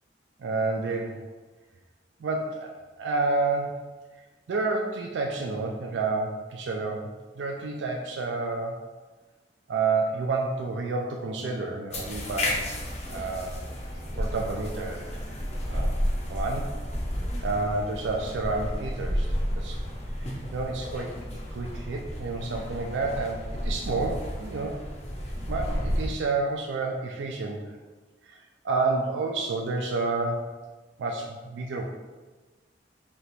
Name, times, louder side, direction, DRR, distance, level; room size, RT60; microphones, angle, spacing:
voice 1, 0.4-1.2 2.2-2.7 3.0-3.8 4.5-7.1 7.4-8.7 9.7-12.7 13.1-13.6 14.2-15.0 15.7-15.9 16.3-16.7 17.4-19.3 19.6-19.8 20.5-21.1 21.5-24.8 25.5-27.7 28.3-28.4 28.6-30.5 31.0-31.8, right 3 dB, 80° right, 1 dB, 0.4 m, -29 dB
sound 1, 11.9-26.1, equal, 35° left, 0.6 m, -32 dB
3.4 x 2.9 x 4.1 m, 1.3 s
head